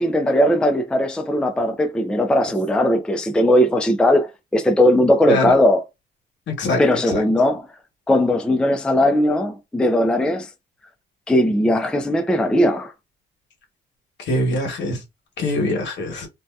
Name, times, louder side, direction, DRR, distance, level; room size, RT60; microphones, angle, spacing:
voice 1, 0.0-5.8 6.8-7.6 8.1-10.5 11.3-12.9, left 1 dB, 5° left, 0.4 m, -18 dB
voice 2, 6.6-7.2 14.2-15.0 15.4-16.3, left 1 dB, 65° left, 1.1 m, -23 dB
2.6 x 2.2 x 2.2 m
cardioid pair, 90°, 20 cm